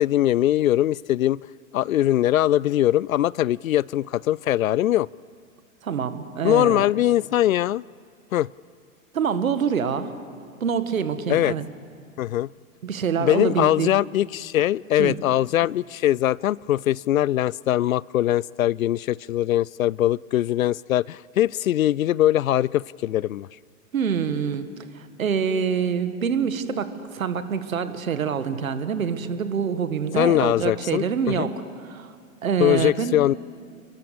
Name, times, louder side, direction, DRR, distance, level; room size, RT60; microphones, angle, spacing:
voice 1, 0.0-1.4 1.7-5.1 6.4-7.8 8.3-8.5 11.3-11.5 12.2-12.5 13.2-23.5 30.2-31.5 32.6-33.3, left 13 dB, 80° left, 0.5 m, -21 dB
voice 2, 5.8-6.9 9.1-10.1 10.6-11.6 12.8-13.9 15.0-15.2 23.9-24.7 24.9-31.5 31.8-32.1 32.4-33.2, right 7 dB, 80° right, 1.9 m, -25 dB
29.0 x 22.0 x 7.0 m
hypercardioid pair, 105°, 40 cm